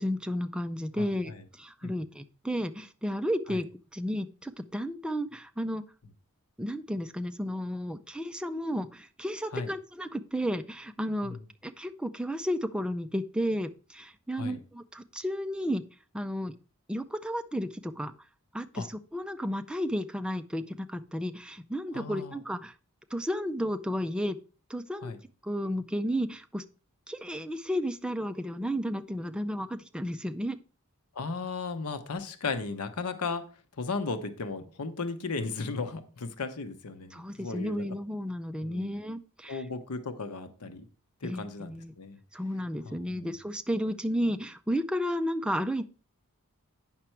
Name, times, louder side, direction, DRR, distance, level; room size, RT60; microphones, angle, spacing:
voice 1, 0.0-3.7 3.9-5.8 6.6-15.8 16.1-16.5 16.9-18.1 18.5-22.7 23.1-24.4 24.7-25.1 25.4-26.6 27.1-30.6 37.1-39.6 41.2-41.9 42.3-45.9, equal, 5° right, 8 dB, 0.4 m, -33 dB
voice 2, 1.0-1.4 1.8-1.9 3.5-3.6 9.5-9.7 11.2-11.4 14.3-14.6 18.7-18.9 21.9-22.4 25.0-25.2 31.1-33.4 33.8-37.9 38.6-39.0 39.5-40.9 41.2-42.2 42.8-43.3, left 4 dB, 85° left, 10 dB, 0.9 m, -36 dB
8.8 x 5.9 x 4.5 m, 0.37 s
head